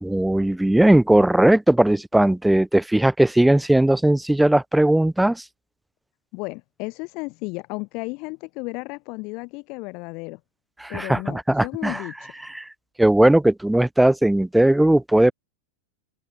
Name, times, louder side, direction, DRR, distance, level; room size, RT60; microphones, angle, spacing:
voice 1, 0.0-5.4 10.8-12.0 12.4-12.7 13.0-15.3, right 1 dB, 5° right, 0.9 m, -18 dB
voice 2, 6.3-10.4 10.9-12.3, left 28 dB, 45° left, 3.2 m, -34 dB
open air
figure-of-eight pair, 90°, 0 cm